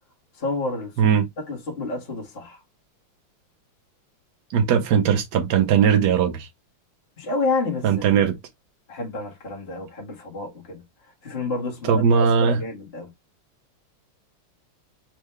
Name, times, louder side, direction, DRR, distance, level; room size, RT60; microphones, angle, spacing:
voice 1, 0.3-1.1 1.4-2.6 7.2-8.1 8.9-10.8 11.2-13.1, left 3 dB, 30° left, 2.0 m, -29 dB
voice 2, 4.5-6.5 7.8-8.4 11.9-12.6, right 7 dB, 65° right, 1.2 m, -19 dB
4.5 x 3.3 x 3.4 m
omnidirectional pair, 2.3 m